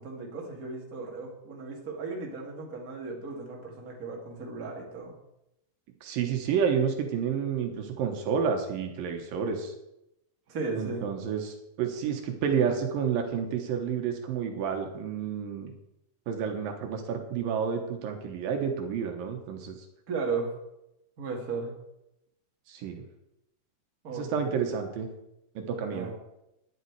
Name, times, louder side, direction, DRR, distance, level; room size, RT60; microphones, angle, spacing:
voice 1, 0.0-5.1 10.5-11.1 20.1-20.5 21.2-21.7 24.0-24.5 25.9-26.1, right 4 dB, 30° right, -1 dB, 2.2 m, -35 dB
voice 2, 6.0-9.7 10.8-15.7 16.3-19.8 22.7-23.0 24.1-25.1 25.6-26.1, right 7 dB, 80° right, 4 dB, 2.9 m, -30 dB
11.5 x 10.5 x 4.7 m, 0.87 s
omnidirectional pair, 4.1 m